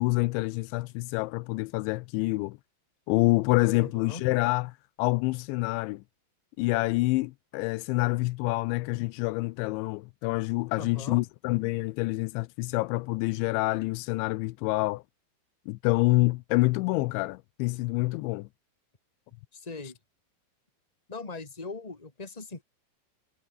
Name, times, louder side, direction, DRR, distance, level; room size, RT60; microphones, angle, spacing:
voice 1, 0.0-2.6 3.1-4.7 5.0-6.0 6.6-15.0 15.7-18.5, left 22 dB, 85° left, 2.8 m, -27 dB
voice 2, 3.8-4.2 10.8-11.2 19.5-20.0 21.1-22.6, left 3 dB, 10° left, 1.8 m, -40 dB
omnidirectional pair, 5.6 m